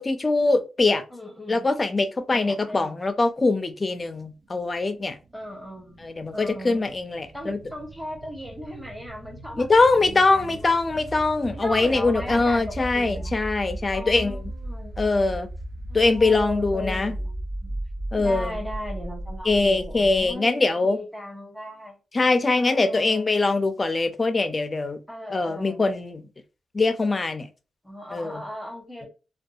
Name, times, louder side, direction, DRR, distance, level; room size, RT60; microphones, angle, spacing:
voice 1, 0.0-1.0 1.5-5.2 6.0-7.6 9.6-14.4 15.0-15.5 15.9-17.1 18.1-18.6 19.5-21.0 22.1-25.0 25.3-26.2 26.7-27.5 28.1-28.4, left 3 dB, 30° left, 0.4 m, -22 dB
voice 2, 1.1-1.7 2.3-3.0 5.3-6.1 6.3-6.9 7.3-11.0 11.5-13.3 13.9-15.1 15.9-17.3 17.6-17.7 18.2-22.0 22.5-23.3 25.1-25.8 27.8-29.1, left 1 dB, ahead, 0.9 m, -37 dB
sound 1, 4.4-20.3, right 1 dB, 55° right, 0.5 m, -36 dB
2.6 x 2.2 x 2.3 m
cardioid pair, 85°, 0 cm